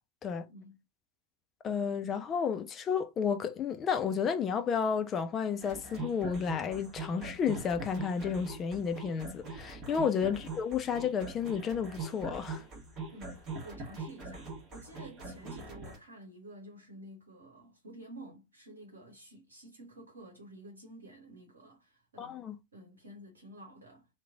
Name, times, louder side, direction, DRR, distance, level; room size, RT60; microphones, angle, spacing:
voice 1, 1.6-12.6 22.2-22.6, left 6 dB, 25° left, 0.5 m, -32 dB
sound 1, 5.6-16.0, right 3 dB, 25° right, 1.3 m, -42 dB
voice 2, 13.1-24.1, right 1 dB, 70° right, 0.9 m, -51 dB
3.0 x 2.2 x 3.6 m
figure-of-eight pair, 90°, 0 cm